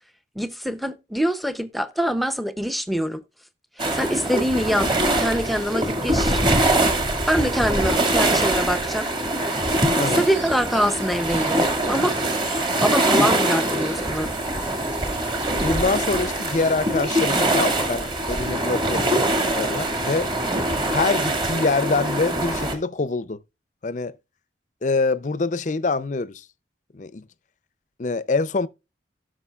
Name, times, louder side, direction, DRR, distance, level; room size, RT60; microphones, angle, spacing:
voice 1, 0.4-3.2 3.9-4.9 5.2-6.4 7.3-9.1 10.0-12.2 12.8-14.3, equal, ahead, 0.6 m, -24 dB
sound 1, 3.8-22.7, right 1 dB, 25° right, 2.0 m, -23 dB
sound 2, 10.1-17.7, right 4 dB, 90° right, 5.4 m, -45 dB
voice 2, 15.6-19.1 19.5-20.3 20.9-23.4 23.8-24.2 24.8-26.5 26.9-27.3 28.0-28.7, left 3 dB, 45° left, 0.5 m, -25 dB
17.0 x 6.3 x 2.4 m
head